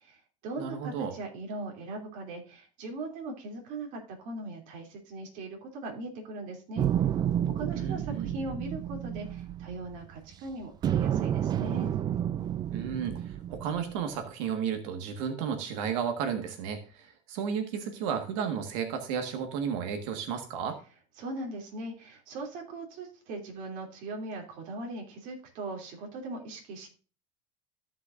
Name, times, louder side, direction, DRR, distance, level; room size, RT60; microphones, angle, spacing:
voice 1, 0.0-6.9 7.5-11.9 21.2-26.9, right 2 dB, 55° right, 1 dB, 2.9 m, -39 dB
voice 2, 0.6-1.1 7.7-8.3 12.7-20.8, right 7 dB, 75° right, 7 dB, 1.5 m, -33 dB
sound 1, 6.8-10.3 10.8-14.2, right 10 dB, 25° right, 0.4 m, -30 dB
14.5 x 5.7 x 2.5 m, 0.37 s
supercardioid pair, 140°, 16 cm